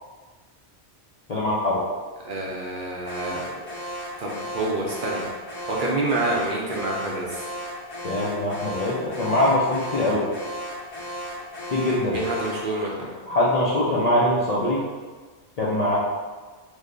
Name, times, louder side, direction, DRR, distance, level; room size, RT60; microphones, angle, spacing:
voice 1, 1.3-1.8 8.0-10.3 11.7-12.2 13.3-14.8 15.6-16.0, left 1 dB, 55° left, -6 dB, 0.4 m, -22 dB
voice 2, 2.2-3.4 4.2-5.2 5.7-7.5 12.1-13.1, right 2 dB, 60° right, -2 dB, 0.6 m, -27 dB
Alarm, 3.1-12.7, equal, 85° left, 1.1 m, -35 dB
3.2 x 2.1 x 3.7 m, 1.4 s
omnidirectional pair, 1.1 m